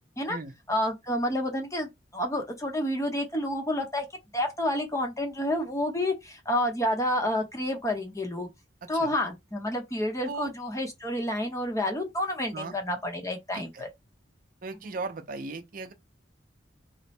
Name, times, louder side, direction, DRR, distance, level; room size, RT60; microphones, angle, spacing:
voice 1, 0.7-4.0 4.3-8.5 8.9-13.9, left 1 dB, 15° left, 0.8 m, -29 dB
voice 2, 13.5-13.8 14.6-15.9, right 3 dB, 45° right, 0.6 m, -37 dB
3.1 x 2.1 x 4.2 m
head